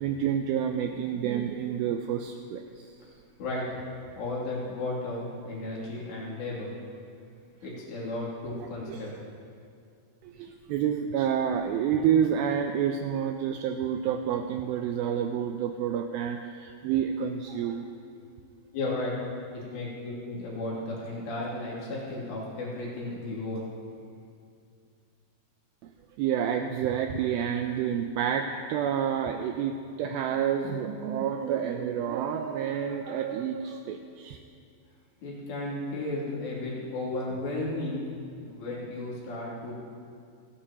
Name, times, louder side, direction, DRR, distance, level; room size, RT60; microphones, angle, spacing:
voice 1, 0.0-2.9 7.7-7.8 8.5-8.6 8.9-9.2 10.2-17.8 26.2-34.4, right 8 dB, 85° right, 5 dB, 2.1 m, -29 dB
voice 2, 3.4-3.8 4.2-6.7 7.6-9.2 18.2-18.3 18.7-19.1 19.5-23.7 35.2-38.1 38.5-39.8, left 2 dB, 90° left, -6 dB, 5.0 m, -34 dB
27.5 x 9.7 x 2.9 m, 2.4 s
omnidirectional pair, 4.8 m